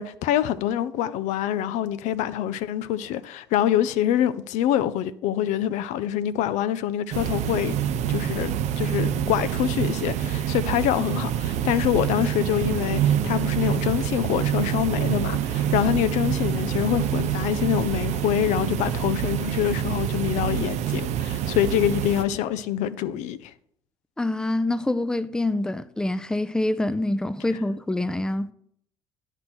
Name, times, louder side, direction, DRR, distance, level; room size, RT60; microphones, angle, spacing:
voice 1, 0.0-7.8 8.1-23.5, left 11 dB, 60° left, 0.4 m, -25 dB
sound 1, 7.1-22.2, right 10 dB, 55° right, 0.6 m, -26 dB
voice 2, 24.2-28.5, left 2 dB, 5° left, 0.5 m, -26 dB
10.5 x 4.4 x 4.3 m
hypercardioid pair, 55°, 14 cm